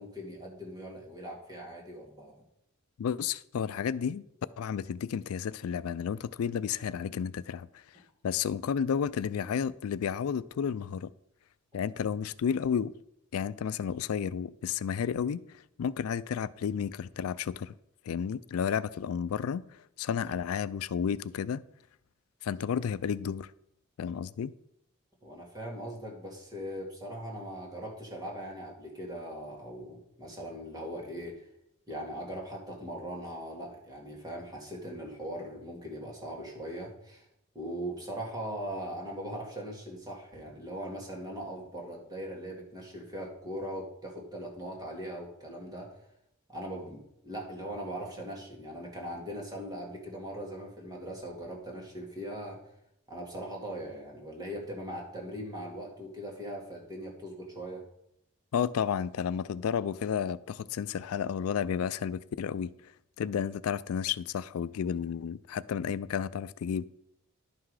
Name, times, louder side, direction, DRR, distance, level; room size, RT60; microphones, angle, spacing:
voice 1, 0.0-2.4 25.2-31.4 31.9-37.3 37.5-45.9 46.5-52.6 53.1-57.8, equal, 20° right, 2.0 m, -40 dB
voice 2, 3.0-4.2 4.6-7.8 8.2-11.1 11.7-12.9 13.3-15.4 15.8-17.7 18.1-21.6 22.4-23.5 24.0-24.5 58.5-62.9 63.2-66.9, left 7 dB, 90° left, 0.4 m, -32 dB
11.0 x 5.9 x 4.8 m
head